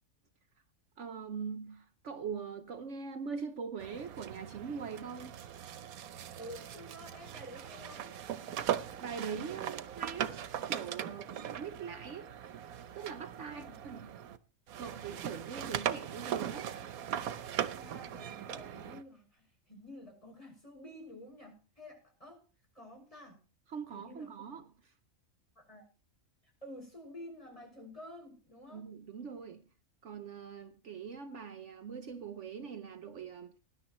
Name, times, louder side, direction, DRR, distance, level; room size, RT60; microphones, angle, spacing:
voice 1, 1.0-5.4 9.0-12.3 12.9-14.1 14.7-16.7 23.7-24.9 28.7-29.7 30.0-33.5, right 6 dB, 60° right, 1.1 m, -42 dB
sound 1, 3.8-14.4 14.7-19.0, right 9 dB, 90° right, 1.3 m, -39 dB
voice 2, 6.4-8.1 13.5-13.7 17.7-22.4 22.7-23.4 23.9-24.3 25.6-25.8 26.4-28.8, left 1 dB, 25° left, 6.2 m, -50 dB
19.5 x 11.0 x 3.0 m
omnidirectional pair, 1.4 m